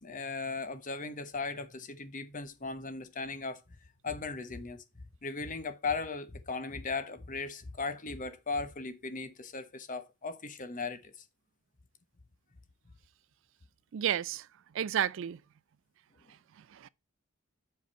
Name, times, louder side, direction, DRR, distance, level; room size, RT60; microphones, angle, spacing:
voice 1, 0.0-3.6 4.0-4.8 5.2-11.2, left 4 dB, 40° left, 1.0 m, -37 dB
voice 2, 13.9-14.5 14.7-15.4 16.7-16.9, right 10 dB, 60° right, 0.4 m, -31 dB
7.7 x 5.2 x 4.2 m
head